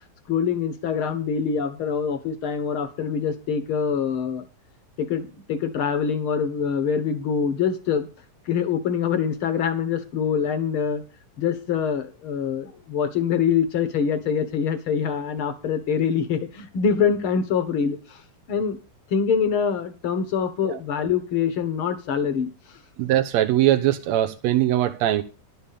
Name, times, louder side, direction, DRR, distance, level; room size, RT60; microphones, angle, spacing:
voice 1, 0.3-4.5 5.0-8.1 8.5-11.0 11.4-18.2 18.5-18.8 19.1-22.5, left 7 dB, 55° left, 1.7 m, -24 dB
voice 2, 23.0-25.2, right 13 dB, 70° right, 1.8 m, -21 dB
11.5 x 7.4 x 6.8 m
omnidirectional pair, 3.7 m